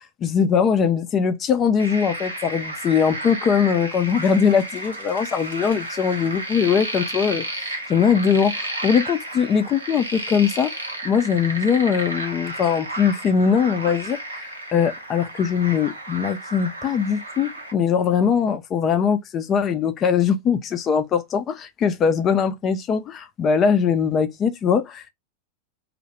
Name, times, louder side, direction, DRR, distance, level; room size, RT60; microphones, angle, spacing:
voice 1, 0.2-10.7 11.0-25.1, left 7 dB, 30° left, 0.3 m, -21 dB
sound 1, 1.8-17.7, right 1 dB, 75° right, 0.7 m, -32 dB
2.2 x 2.1 x 2.8 m
figure-of-eight pair, 90°, 0 cm